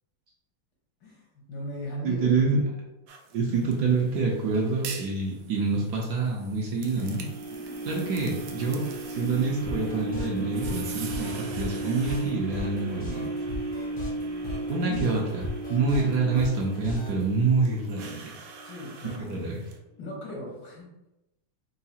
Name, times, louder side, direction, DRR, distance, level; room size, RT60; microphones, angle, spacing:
voice 1, 1.5-2.4 7.0-8.3 14.8-15.3 18.6-19.4 20.0-20.8, left 1 dB, 75° left, -3 dB, 1.9 m, -38 dB
voice 2, 2.0-2.6 3.3-7.2 7.8-8.8 9.1-13.3 14.7-18.3 19.2-19.6, right 4 dB, 70° right, -2 dB, 1.0 m, -27 dB
sound 1, 3.1-19.8, right 6 dB, 90° right, 0.7 m, -46 dB
sound 2, 6.8-18.9 19.4-19.5, right 2 dB, 55° right, 0.4 m, -35 dB
sound 3, 9.6-17.2, left 1 dB, 55° left, 0.6 m, -37 dB
4.7 x 2.4 x 2.7 m, 0.97 s
omnidirectional pair, 2.1 m